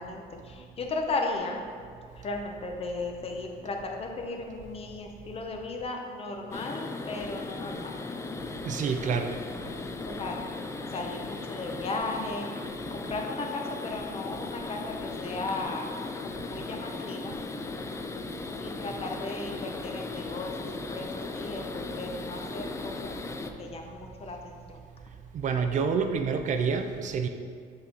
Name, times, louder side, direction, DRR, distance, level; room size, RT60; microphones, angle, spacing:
voice 1, 0.0-1.6 2.1-7.9 10.0-10.4 10.9-17.4 18.6-21.1 21.3-24.8, left 3 dB, 35° left, 2 dB, 0.8 m, -36 dB
sound 1, 6.5-23.5, left 3 dB, 15° left, 0.3 m, -37 dB
voice 2, 8.6-9.3 25.3-27.3, right 6 dB, 45° right, 6 dB, 0.4 m, -27 dB
5.7 x 4.4 x 3.9 m, 2.1 s
cardioid pair, 110°, 17 cm